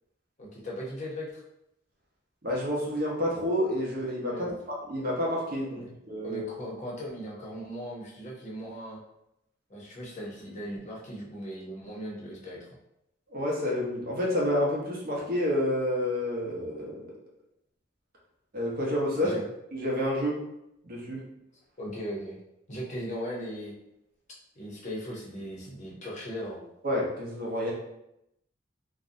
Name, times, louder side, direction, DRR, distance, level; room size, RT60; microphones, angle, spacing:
voice 1, 0.4-1.4 4.3-4.6 5.7-5.9 6.2-9.0 9.7-12.7 19.2-19.4 21.8-22.4 22.7-23.7 24.6-26.6, equal, 40° left, -4 dB, 0.6 m, -38 dB
voice 2, 2.4-6.4 13.3-17.0 18.5-19.3 19.7-20.4 20.8-21.2 26.8-27.7, left 1 dB, 50° right, -3 dB, 0.7 m, -29 dB
2.6 x 2.1 x 2.6 m, 0.82 s
head